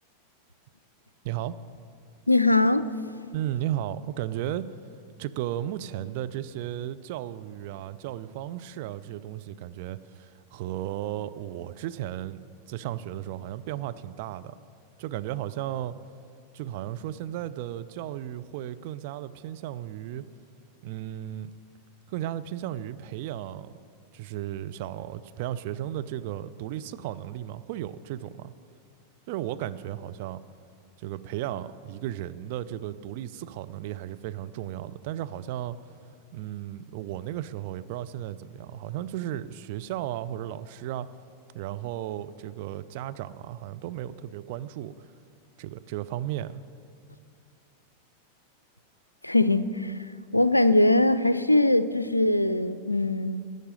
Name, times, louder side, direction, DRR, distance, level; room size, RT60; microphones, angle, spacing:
voice 1, 1.2-1.6 3.3-4.7 5.2-12.4 12.7-14.6 15.0-15.9 16.5-20.2 20.8-21.5 22.1-23.7 24.1-28.5 29.3-30.4 31.0-35.8 36.3-41.1 41.5-45.1 45.6-46.6, right 12 dB, 50° right, 0.4 m, -34 dB
voice 2, 2.3-2.9 49.2-50.0 50.3-53.4, left 2 dB, 85° left, 0.4 m, -21 dB
11.5 x 6.6 x 8.8 m
figure-of-eight pair, 90°, 0 cm